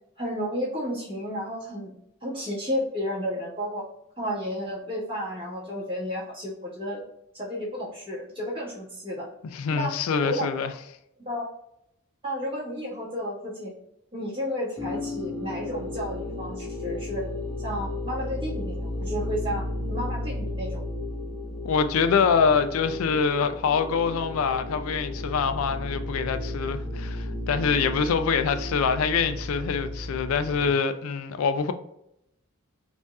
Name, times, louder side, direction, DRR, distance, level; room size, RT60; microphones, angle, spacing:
voice 1, 0.2-2.0 2.2-3.9 4.2-7.0 7.3-9.3 9.7-10.5 11.2-11.5 12.2-13.7 14.1-17.2 17.6-20.8, equal, 25° right, 1.4 m, -32 dB
voice 2, 9.5-10.7 21.6-31.7, left 6 dB, 85° left, 0.3 m, -25 dB
sound 1, 14.8-30.7, left 1 dB, 10° left, 0.4 m, -33 dB
5.2 x 2.5 x 2.3 m
head